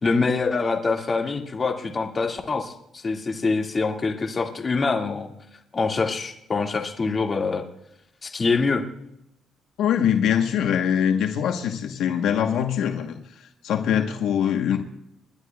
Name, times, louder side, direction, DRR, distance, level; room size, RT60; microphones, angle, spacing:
voice 1, 0.0-5.3 5.7-7.6 8.2-8.8, left 4 dB, 35° left, 2 dB, 2.0 m, -25 dB
voice 2, 9.8-13.2 13.6-14.8, left 9 dB, 85° left, 4 dB, 1.1 m, -23 dB
30.0 x 11.5 x 2.3 m, 0.79 s
cardioid pair, 90°, 0 cm